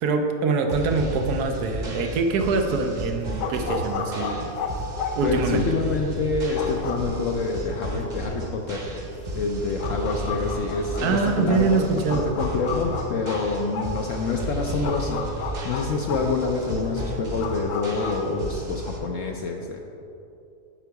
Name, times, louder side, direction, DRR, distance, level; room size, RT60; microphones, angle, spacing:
voice 1, 0.0-4.5 5.2-5.7 11.0-12.4, right 4 dB, 85° right, 4 dB, 1.2 m, -24 dB
sound 1, 0.7-19.0, equal, 35° right, 0.8 m, -34 dB
sound 2, 2.3-18.2, left 4 dB, 85° left, 1.2 m, -34 dB
voice 2, 5.2-8.8 9.3-11.9 12.1-15.2 15.6-19.8, left 4 dB, 65° left, 1 dB, 0.9 m, -27 dB
7.8 x 4.6 x 4.6 m, 2.7 s
omnidirectional pair, 1.6 m